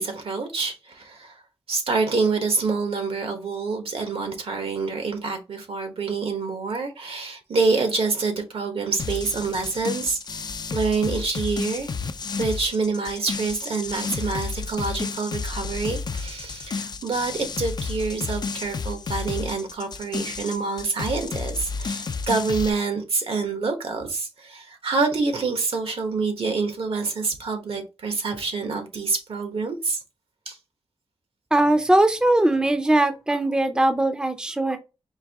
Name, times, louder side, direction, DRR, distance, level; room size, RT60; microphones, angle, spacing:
voice 1, 0.0-1.4 1.7-11.9 12.4-30.0 30.5-30.6, right 4 dB, 70° right, 1.2 m, -27 dB
sound 1, 9.0-22.7, left 4 dB, 45° left, 0.4 m, -31 dB
voice 2, 31.5-34.8, right 1 dB, 10° right, 0.5 m, -20 dB
4.7 x 2.6 x 3.5 m
wide cardioid pair, 80°, 10 cm